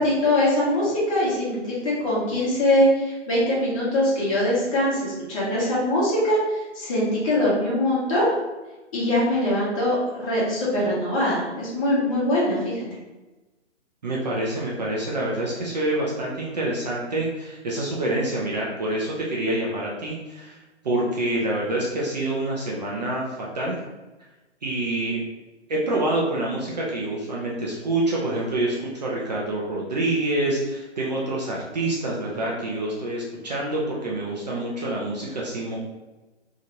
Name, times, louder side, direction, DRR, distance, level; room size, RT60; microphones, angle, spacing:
voice 1, 0.0-8.3 8.9-12.8, left 1 dB, 30° left, -6 dB, 1.0 m, -22 dB
voice 2, 14.0-20.6 20.8-23.8 24.6-25.2 25.7-35.8, right 1 dB, 35° right, -4 dB, 0.5 m, -27 dB
2.8 x 2.4 x 2.9 m, 1.1 s
figure-of-eight pair, 140°, 36 cm